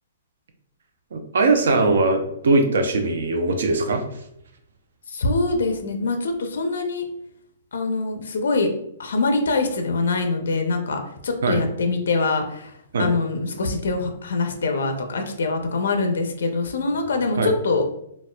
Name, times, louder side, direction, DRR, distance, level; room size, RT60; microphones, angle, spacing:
voice 1, 1.1-4.0 11.4-11.6 12.9-13.1 17.4-17.5, right 3 dB, 70° right, 5 dB, 0.6 m, -20 dB
voice 2, 5.1-7.0 7.7-8.7 9.0-17.9, left 3 dB, 75° left, 5 dB, 0.5 m, -24 dB
4.1 x 2.3 x 2.2 m, 0.75 s
hypercardioid pair, 175°, 0 cm